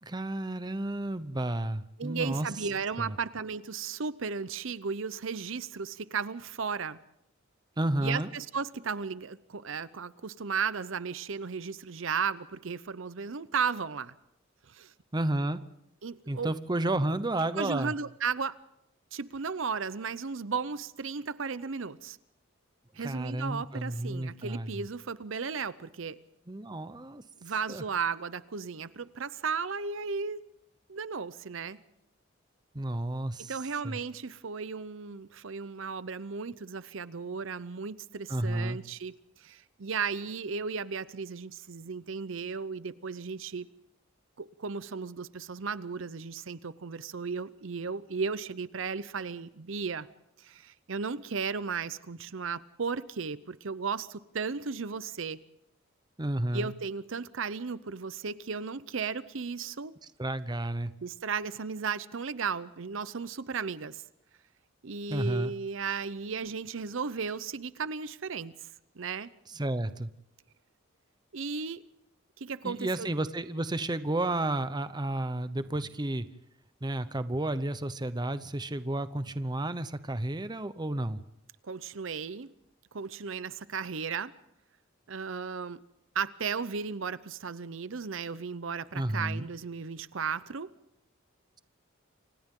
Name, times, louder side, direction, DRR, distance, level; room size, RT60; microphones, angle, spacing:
voice 1, 0.0-2.5 3.0-3.2 7.8-8.3 15.1-15.6 16.3-17.9 23.0-24.9 26.5-27.2 27.7-27.8 32.7-33.6 33.8-34.0 38.3-38.8 56.2-56.7 60.2-60.9 65.1-65.5 69.5-70.1 72.6-76.3 76.8-81.2 88.9-89.5, right 1 dB, 20° right, 12 dB, 0.8 m, -31 dB
voice 2, 2.0-7.0 8.0-14.1 14.7-14.9 16.0-16.5 17.6-18.6 19.1-22.2 22.9-26.2 27.4-30.4 30.9-31.8 33.4-43.7 44.4-50.1 50.4-55.4 56.5-59.9 61.0-64.0 64.8-68.7 69.0-69.3 71.3-71.8 72.4-73.1 81.6-82.5 82.9-84.3 85.1-85.8 86.1-90.7, right 5 dB, 65° right, 16 dB, 0.7 m, -35 dB
29.5 x 25.5 x 3.8 m, 0.79 s
head